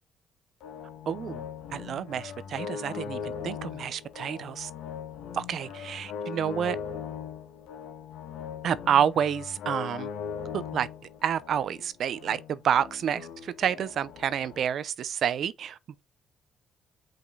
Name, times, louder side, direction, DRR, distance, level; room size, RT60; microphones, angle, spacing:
sound 1, 0.6-14.6, left 7 dB, 85° left, 1.6 m, -39 dB
voice 1, 1.1-1.4 1.7-4.7 5.3-6.8 8.6-10.1 10.7-10.9 11.2-16.0, right 9 dB, 55° right, 0.7 m, -29 dB
5.8 x 5.2 x 5.4 m
cardioid pair, 115°, 0 cm